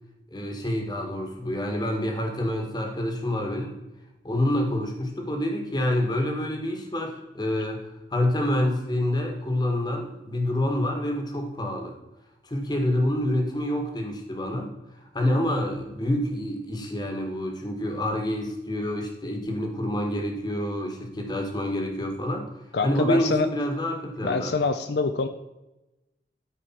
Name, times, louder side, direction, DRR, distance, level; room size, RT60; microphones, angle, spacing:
voice 1, 0.3-3.8 4.2-11.9 12.4-22.5 22.8-24.5, left 1 dB, 25° left, 3 dB, 1.4 m, -27 dB
voice 2, 22.7-23.5 24.2-25.3, left 4 dB, 70° left, 9 dB, 0.5 m, -25 dB
12.5 x 4.9 x 4.4 m, 0.98 s
head